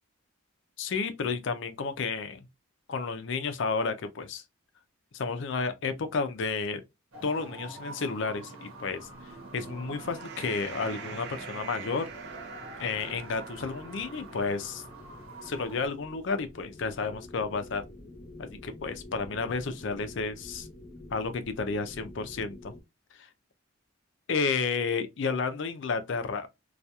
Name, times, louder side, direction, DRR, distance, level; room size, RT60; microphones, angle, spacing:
voice 1, 0.8-2.4 2.9-4.4 5.1-6.8 7.2-9.1 9.5-12.1 12.8-14.8 15.4-17.8 18.4-20.7 21.1-22.7 23.2-23.3 24.3-26.5, left 4 dB, 60° left, 0.4 m, -31 dB
sound 1, 7.1-15.9, right 1 dB, 85° right, 1.0 m, -47 dB
sound 2, 9.0-15.5, right 6 dB, 50° right, 0.4 m, -45 dB
sound 3, 11.6-22.8, left 1 dB, 30° left, 0.7 m, -49 dB
2.8 x 2.3 x 2.2 m
head